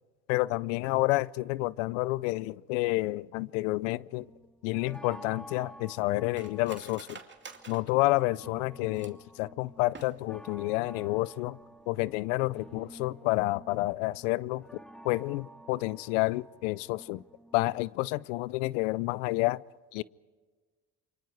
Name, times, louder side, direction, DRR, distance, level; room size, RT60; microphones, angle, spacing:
voice 1, 0.3-4.3 4.6-7.2 7.7-11.6 11.9-14.6 15.0-17.2 17.5-19.6 19.9-20.0, left 20 dB, 90° left, 0.6 m, -29 dB
sound 1, 4.1-18.3, right 1 dB, ahead, 2.3 m, -51 dB
Cutlery silverware, 4.9-9.4 9.8-10.5 10.8-10.9 11.3-11.6 12.0-12.1, right 5 dB, 30° right, 2.6 m, -50 dB
28.5 x 24.5 x 4.7 m
hypercardioid pair, 65°, 37 cm